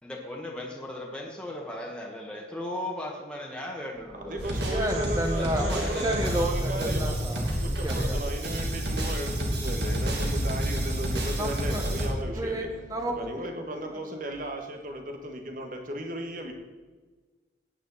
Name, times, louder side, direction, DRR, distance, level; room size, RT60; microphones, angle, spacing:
voice 1, 0.0-4.6 5.4-6.4, left 1 dB, 5° left, -2 dB, 1.5 m, -37 dB
voice 2, 4.1-7.2 7.5-12.7 13.1-16.5, right 1 dB, 50° right, 4 dB, 1.6 m, -36 dB
sound 1, 4.4-12.1, equal, 70° right, 2.6 m, -29 dB
voice 3, 4.7-5.7 6.0-8.3 11.3-11.9 12.3-14.0, right 1 dB, 20° right, 3 dB, 1.5 m, -32 dB
17.0 x 9.2 x 4.2 m, 1.3 s
head